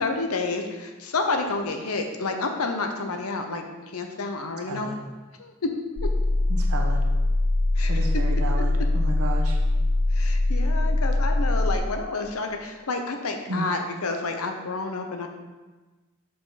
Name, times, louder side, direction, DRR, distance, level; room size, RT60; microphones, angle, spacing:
voice 1, 0.0-4.9 5.4-5.7 7.8-8.1 10.1-15.3, left 3 dB, 85° left, 5 dB, 0.8 m, -29 dB
sound 1, 6.0-11.8, left 2 dB, 50° left, 0.6 m, -22 dB
voice 2, 6.5-7.0 7.9-9.6 13.5-13.7, right 1 dB, 85° right, 1 dB, 1.1 m, -32 dB
6.2 x 5.1 x 4.1 m, 1.2 s
head